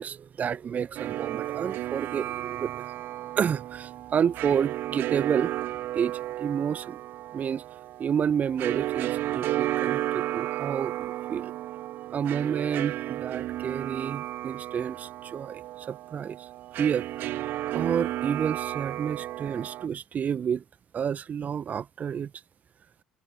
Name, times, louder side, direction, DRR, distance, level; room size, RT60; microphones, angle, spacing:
voice 1, 0.0-2.9 3.3-5.5 5.9-7.0 7.3-7.6 8.0-11.5 12.1-16.5 16.8-17.1 17.7-20.6 20.9-22.3, right 8 dB, 35° right, 1.4 m, -30 dB
sound 1, 1.0-19.9, right 14 dB, 50° right, 3.6 m, -33 dB
open air
figure-of-eight pair, 55°, 4 cm